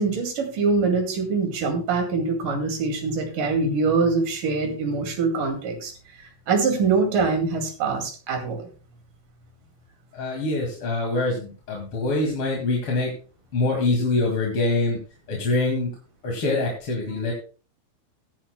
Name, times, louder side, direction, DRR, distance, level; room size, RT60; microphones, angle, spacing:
voice 1, 0.0-5.9 6.5-8.7, right 4 dB, 65° right, 4 dB, 3.8 m, -24 dB
voice 2, 10.1-13.1 13.5-15.0 15.3-15.9 16.2-17.3, left 2 dB, 45° left, 0 dB, 2.7 m, -24 dB
18.0 x 10.5 x 2.2 m, 0.36 s
omnidirectional pair, 4.1 m